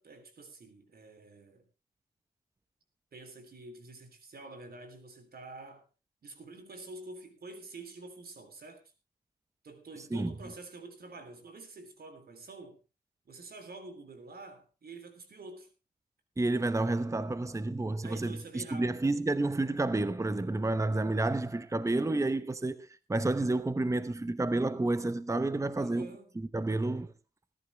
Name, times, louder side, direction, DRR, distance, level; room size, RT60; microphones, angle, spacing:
voice 1, 0.0-1.7 3.1-5.9 6.2-8.8 9.6-12.8 13.3-15.7 18.0-19.0 25.8-26.4, right 3 dB, 60° right, 3.5 m, -48 dB
voice 2, 16.4-26.1 26.4-27.1, right 2 dB, 15° right, 0.9 m, -30 dB
18.5 x 11.0 x 3.4 m
cardioid pair, 60°, 18 cm